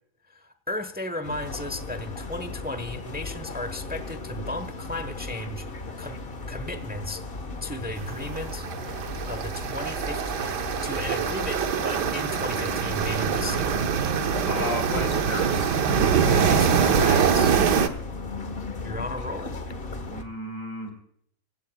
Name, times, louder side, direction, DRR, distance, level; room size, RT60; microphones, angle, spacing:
voice 1, 0.3-5.7 6.0-6.2 6.5-7.3 7.6-8.7 9.3-13.8 16.2-17.6 18.8-19.6, left 1 dB, 5° right, 10 dB, 0.8 m, -35 dB
sound 1, 1.2-20.2, left 3 dB, 35° left, 1.4 m, -36 dB
sound 2, 8.0-17.9, right 7 dB, 75° right, 1.6 m, -24 dB
voice 2, 14.5-15.7 20.1-20.9, left 2 dB, 80° left, 5 dB, 4.6 m, -33 dB
25.5 x 16.0 x 2.3 m, 0.67 s
omnidirectional pair, 1.8 m